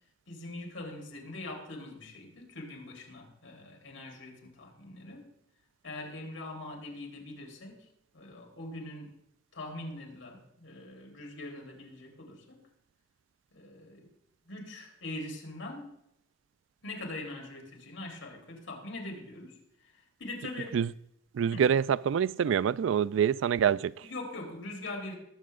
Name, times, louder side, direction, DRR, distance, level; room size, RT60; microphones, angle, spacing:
voice 1, 0.3-5.3 5.8-7.9 8.1-9.1 9.5-12.6 13.5-14.1 14.4-15.9 16.8-20.8 21.5-21.6 24.0-25.1, left 2 dB, 75° left, 3.6 m, -42 dB
voice 2, 21.3-24.1, right 8 dB, 75° right, 0.3 m, -26 dB
19.5 x 7.7 x 3.7 m
head